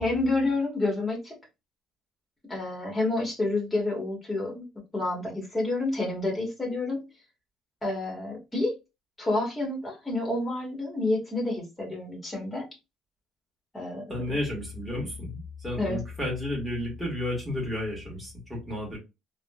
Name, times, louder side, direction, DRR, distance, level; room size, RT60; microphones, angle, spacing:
voice 1, 0.0-1.4 2.5-4.7 4.9-7.0 7.8-8.7 9.2-12.7 13.7-14.4 15.8-16.0, left 2 dB, 15° left, 0 dB, 1.3 m, -29 dB
voice 2, 14.1-19.0, left 1 dB, 5° right, -3 dB, 1.6 m, -32 dB
3.5 x 2.2 x 2.3 m, 0.25 s
cardioid pair, 140°, 0 cm